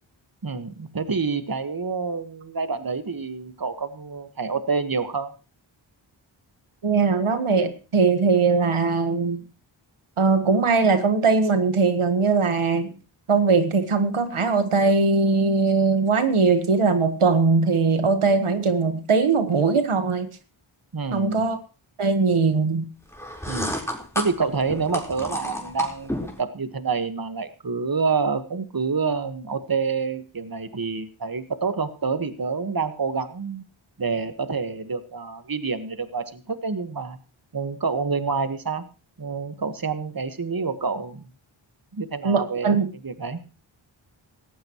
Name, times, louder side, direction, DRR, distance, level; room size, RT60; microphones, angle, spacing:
voice 1, 0.4-5.3 20.9-21.4 23.5-23.8 24.1-26.1 26.4-33.6 34.0-37.2 37.5-38.8 39.2-41.3 41.9-42.7 43.0-43.4, right 4 dB, 45° right, 9 dB, 1.6 m, -27 dB
voice 2, 6.8-9.4 10.2-12.9 13.3-20.3 21.1-21.6 22.0-22.8 42.2-42.9, right 4 dB, 90° right, 8 dB, 1.5 m, -20 dB
sound 1, 23.1-26.4, left 1 dB, 5° left, 4.3 m, -31 dB
18.0 x 15.0 x 3.1 m, 0.34 s
cardioid pair, 45°, 49 cm